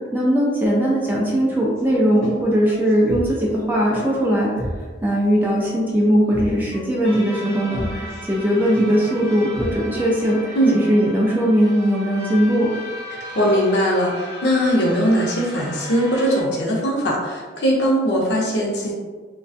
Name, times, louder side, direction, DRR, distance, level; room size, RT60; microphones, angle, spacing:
voice 1, 0.1-4.5 5.0-10.6 10.9-12.7, equal, 10° right, -4 dB, 0.3 m, -19 dB
sound 1, 1.8-10.0, equal, 10° left, 1.0 m, -34 dB
sound 2, 7.0-16.4, equal, 60° right, 0.7 m, -37 dB
voice 2, 13.1-18.9, equal, 70° left, -3 dB, 0.6 m, -20 dB
2.3 x 2.2 x 2.5 m, 1.4 s
head